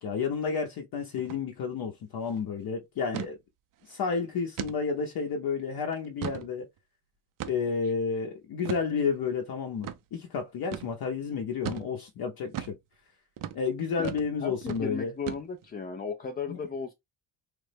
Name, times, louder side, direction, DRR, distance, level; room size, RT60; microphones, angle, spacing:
voice 1, 0.0-3.4 3.8-6.7 7.5-12.7 13.5-15.1 16.5-16.6, left 5 dB, 55° left, 0.7 m, -31 dB
sound 1, 1.2-1.4 1.7-1.8 2.2-2.4 3.1-3.3 3.8-3.9 4.6-4.8 5.3-5.4 5.9-6.5 7.4-7.8 8.6-8.9 9.8-10.0 10.7-10.9 11.6-11.9 12.5-12.8 13.4-13.6 14.0-14.3 14.6-14.8 15.3-15.7, right 10 dB, 50° right, 0.5 m, -36 dB
voice 2, 14.4-16.9, left 5 dB, 25° left, 0.3 m, -35 dB
3.2 x 2.0 x 3.2 m
cardioid pair, 85°, 44 cm